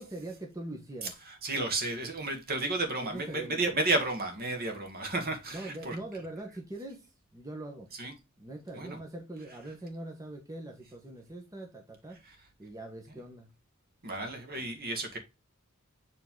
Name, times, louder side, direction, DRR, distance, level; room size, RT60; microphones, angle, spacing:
voice 1, 0.0-1.1 3.0-3.8 5.5-7.9 8.4-12.2 12.6-13.5, right 1 dB, 15° right, 1.2 m, -42 dB
voice 2, 1.3-6.0 8.0-8.1 8.7-9.0 12.3-12.4 14.0-15.2, right 2 dB, 45° right, 1.9 m, -32 dB
7.4 x 3.9 x 3.8 m
head